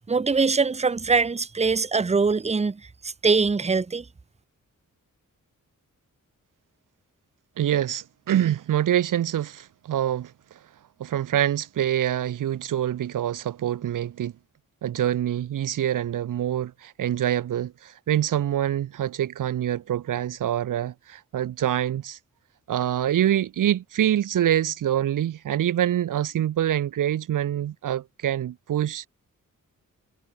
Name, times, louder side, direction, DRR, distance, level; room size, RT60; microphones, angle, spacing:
voice 1, 0.1-4.0, right 4 dB, 20° right, 0.7 m, -23 dB
voice 2, 7.6-10.3 11.0-14.3 14.8-22.2 22.7-29.1, right 11 dB, 75° right, 0.6 m, -25 dB
wide cardioid pair, 160°, 32 cm